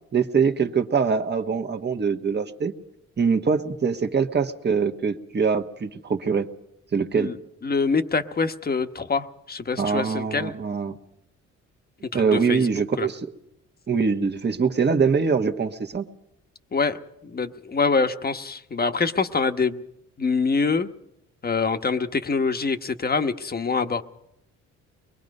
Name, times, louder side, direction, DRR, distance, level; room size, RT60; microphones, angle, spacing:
voice 1, 0.1-2.7 3.2-6.5 6.9-7.3 9.8-11.0 12.1-13.2 13.9-16.1, right 5 dB, 35° right, 5 dB, 1.6 m, -23 dB
voice 2, 7.6-10.5 12.1-12.7 13.0-13.1 16.7-17.0 17.2-19.8 20.2-20.9 21.4-24.0, left 4 dB, 30° left, 8 dB, 1.2 m, -25 dB
23.5 x 21.5 x 5.4 m, 0.82 s
cardioid pair, 90°, 30 cm